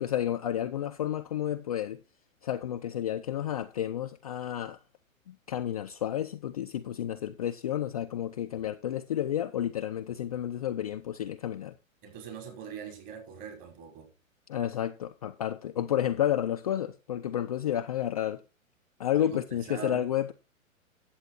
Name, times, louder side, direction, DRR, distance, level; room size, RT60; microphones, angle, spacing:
voice 1, 0.0-2.0 2.4-4.8 5.3-11.8 14.5-18.4 19.0-20.3, left 11 dB, 30° left, 0.4 m, -31 dB
voice 2, 12.0-14.1 19.1-20.1, right 7 dB, 40° right, 5.5 m, -42 dB
10.0 x 7.8 x 4.2 m
figure-of-eight pair, 115°, 41 cm